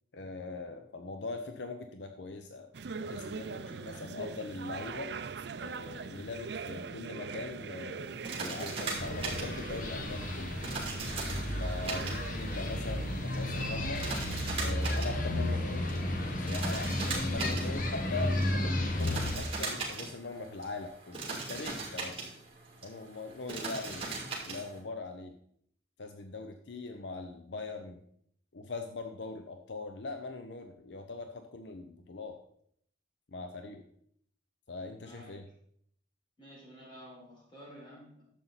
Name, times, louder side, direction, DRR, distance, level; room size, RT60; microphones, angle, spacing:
voice 1, 0.1-2.7 3.0-5.1 5.6-10.6 11.6-14.0 14.6-15.9 16.5-22.2 22.8-25.3 26.0-28.0 28.5-32.4 33.3-33.8 34.7-35.4, left 3 dB, 70° left, 6 dB, 0.7 m, -41 dB
sound 1, 2.7-13.8, right 5 dB, 60° right, 0.4 m, -42 dB
voice 2, 3.5-4.0 11.5-11.7 12.1-12.3 23.5-23.7 35.0-35.4 36.4-38.2, equal, 25° left, -6 dB, 4.6 m, -52 dB
sound 2, 8.1-24.8, right 3 dB, 30° right, 2.5 m, -40 dB
sound 3, 9.0-19.4, left 1 dB, 45° left, 1.2 m, -33 dB
11.0 x 7.4 x 4.0 m, 0.68 s
head